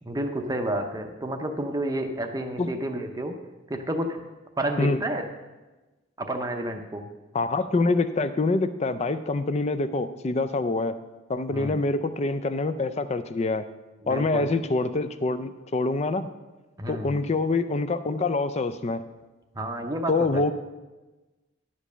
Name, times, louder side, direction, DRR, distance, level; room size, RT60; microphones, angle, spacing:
voice 1, 0.0-3.4 3.7-4.2 4.6-5.2 6.2-7.1 11.5-11.8 14.0-14.5 16.8-17.2 19.5-20.5, right 1 dB, 15° right, 4 dB, 0.6 m, -30 dB
voice 2, 7.3-10.9 11.3-13.7 14.1-16.3 16.9-19.0 20.1-20.5, left 3 dB, 30° left, 12 dB, 0.4 m, -25 dB
11.0 x 5.2 x 6.6 m, 1.2 s
head